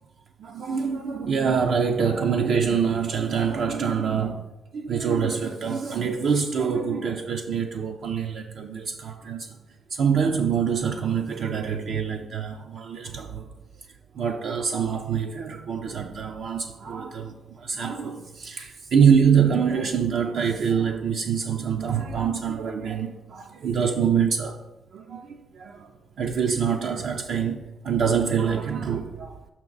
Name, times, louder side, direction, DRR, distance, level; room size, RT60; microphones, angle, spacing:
voice 1, 0.4-9.6 9.9-13.5 14.1-24.6 24.9-25.9 26.2-29.4, right 6 dB, 65° right, 0.5 m, -25 dB
6.0 x 5.9 x 3.9 m
cardioid pair, 90°, 0 cm